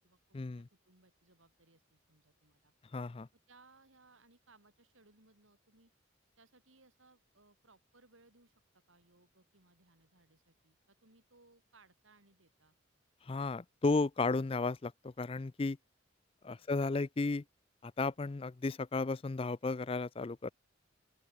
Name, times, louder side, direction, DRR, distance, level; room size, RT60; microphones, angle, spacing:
voice 1, 0.0-2.7 3.5-5.9 6.4-12.7 16.6-16.7, right 3 dB, 90° right, 6.1 m, -66 dB
voice 2, 2.9-3.3 13.3-15.8 16.4-17.4 17.8-20.5, left 3 dB, 30° left, 0.4 m, -34 dB
open air
head